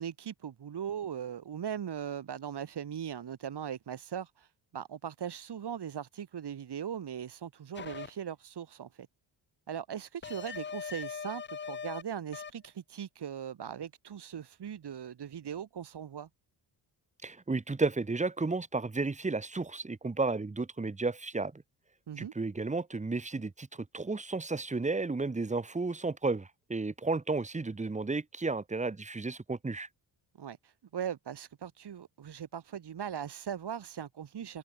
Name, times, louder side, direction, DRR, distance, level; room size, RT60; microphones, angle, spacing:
voice 1, 0.0-9.1 9.7-16.3 22.1-22.3 30.4-34.6, right 8 dB, 60° right, 3.2 m, -39 dB
sound 1, 7.7-8.1 10.2-12.0 12.3-12.7, left 6 dB, 25° left, 0.6 m, -40 dB
voice 2, 17.2-21.6 22.2-23.7 23.9-29.9, right 3 dB, 15° right, 1.2 m, -33 dB
cardioid pair, 115°, 46 cm